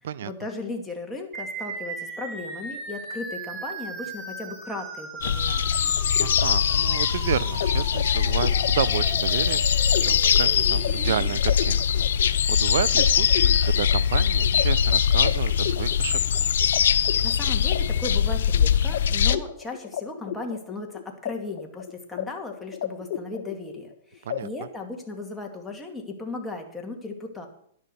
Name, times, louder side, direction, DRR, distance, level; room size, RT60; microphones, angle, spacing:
voice 1, 0.2-5.6 17.2-27.5, left 3 dB, 5° left, 0 dB, 2.3 m, -36 dB
sound 1, 1.3-11.3, right 3 dB, 20° right, 2.4 m, -38 dB
sound 2, 5.2-19.4, left 8 dB, 80° left, 0.7 m, -22 dB
sound 3, 5.6-16.8 17.0-18.6 18.9-19.0 19.3-21.3 21.6-22.2 22.5-23.9 24.3-24.4, left 10 dB, 55° left, 1.5 m, -34 dB
voice 2, 6.2-16.5 24.2-24.5, right 10 dB, 70° right, 19 dB, 0.5 m, -31 dB
11.5 x 10.5 x 6.8 m, 0.65 s
hypercardioid pair, 150°, 0 cm